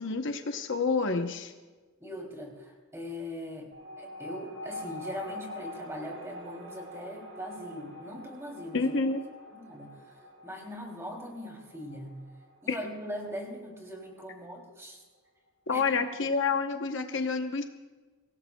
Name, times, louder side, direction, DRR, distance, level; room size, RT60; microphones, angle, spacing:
voice 1, 0.0-1.5 8.7-9.2 12.7-12.8 15.7-17.6, left 4 dB, 60° left, 6 dB, 0.9 m, -28 dB
voice 2, 2.0-3.7 4.0-8.9 9.5-12.2 12.6-15.0 15.7-16.0, equal, 15° right, 0 dB, 2.9 m, -41 dB
sound 1, 3.7-14.6, left 2 dB, 85° right, 4.9 m, -45 dB
24.5 x 17.5 x 2.3 m, 1.3 s
head